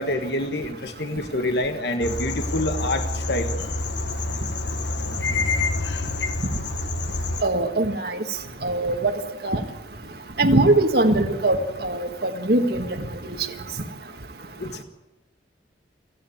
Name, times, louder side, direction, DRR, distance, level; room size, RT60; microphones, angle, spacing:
voice 1, 0.0-3.5 14.6-14.8, left 1 dB, 65° left, 7 dB, 1.5 m, -27 dB
sound 1, 2.0-7.4, left 3 dB, 80° left, 1.3 m, -27 dB
voice 2, 7.4-8.2 8.6-9.1 9.4-9.6 10.4-11.6 11.8-12.9, right 2 dB, 60° right, 5 dB, 1.7 m, -21 dB
28.5 x 10.0 x 9.5 m, 1.1 s
head